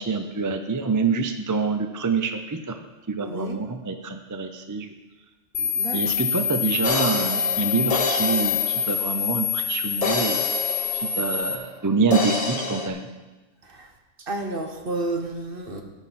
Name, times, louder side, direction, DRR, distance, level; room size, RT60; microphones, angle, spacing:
voice 1, 0.0-2.8 3.1-4.9 5.9-10.4 10.9-13.1, right 4 dB, 25° right, 6 dB, 0.4 m, -26 dB
voice 2, 3.2-3.6 5.6-6.0 13.6-13.9 14.2-15.8, right 2 dB, 50° right, 3 dB, 1.3 m, -31 dB
sound 1, 5.5-11.5, left 8 dB, 70° left, 1.0 m, -26 dB
sound 2, 6.8-9.4 10.0-11.7 12.1-12.9, left 3 dB, 35° left, 0.8 m, -28 dB
16.5 x 6.0 x 4.3 m, 1.2 s
omnidirectional pair, 1.3 m